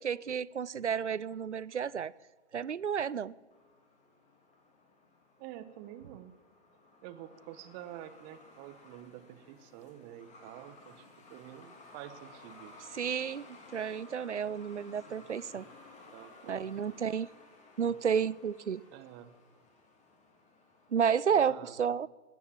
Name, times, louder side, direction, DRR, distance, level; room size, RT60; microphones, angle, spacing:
voice 1, 0.0-2.1 2.5-3.3 12.9-15.7 16.5-17.3 17.8-18.8 20.9-22.1, right 7 dB, 85° right, 0.6 m, -31 dB
Truck, 3.5-20.9, left 2 dB, 20° left, 2.8 m, -56 dB
voice 2, 5.4-6.3 7.0-12.7 13.0-13.1 15.1-15.3 15.5-15.8 16.1-16.7 17.8-18.0 18.9-19.4 21.3-21.7, right 12 dB, 35° right, 1.3 m, -49 dB
19.5 x 10.0 x 7.4 m
figure-of-eight pair, 105°, 34 cm